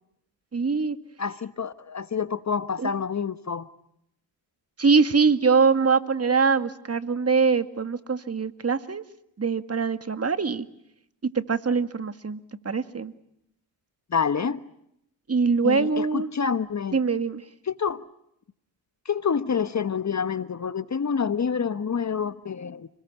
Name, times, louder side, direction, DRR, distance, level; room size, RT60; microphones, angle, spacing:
voice 1, 0.5-1.0 2.8-2.9 4.8-9.0 9.4-10.7 11.5-12.4 12.7-13.1 15.3-16.3 16.9-17.4, right 5 dB, 30° right, 11 dB, 2.0 m, -23 dB
voice 2, 1.2-3.7 14.1-14.6 15.6-17.0 17.7-18.0 19.0-22.9, left 6 dB, 35° left, 14 dB, 1.2 m, -27 dB
30.0 x 21.0 x 9.1 m, 0.79 s
hypercardioid pair, 50°, 50 cm